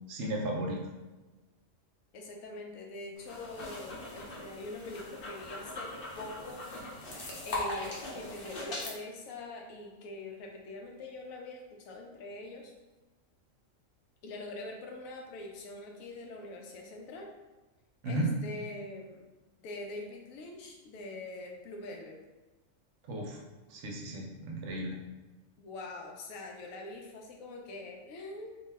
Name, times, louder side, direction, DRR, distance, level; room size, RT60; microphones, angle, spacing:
voice 1, 0.1-0.8 18.0-18.3 23.1-23.4 23.7-25.0, right 1 dB, 70° right, 0 dB, 0.8 m, -34 dB
voice 2, 2.1-6.7 7.5-12.7 14.2-17.3 18.0-19.2 19.6-22.2 25.6-28.6, left 2 dB, 85° left, 1 dB, 1.0 m, -43 dB
sound 1, 3.2-8.9, left 2 dB, 50° left, 0.8 m, -40 dB
2.6 x 2.2 x 3.2 m, 1.1 s
omnidirectional pair, 1.4 m